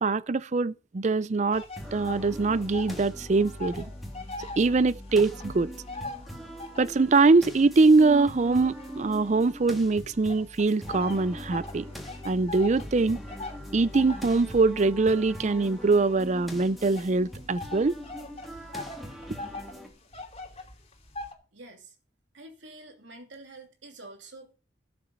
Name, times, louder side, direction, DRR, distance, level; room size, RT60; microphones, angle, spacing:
voice 1, 0.0-1.6 1.9-3.9 4.6-5.7 6.8-11.8 12.2-13.2 13.7-18.0, right 3 dB, 40° right, 0.5 m, -23 dB
sound 1, 1.5-3.1 3.3-7.0 7.6-9.7 10.3-21.3, left 3 dB, 35° left, 2.8 m, -42 dB
sound 2, 1.8-19.9, equal, ahead, 2.5 m, -41 dB
voice 2, 21.5-21.9 22.3-24.5, right 2 dB, 80° right, 2.9 m, -47 dB
12.5 x 6.9 x 6.5 m
head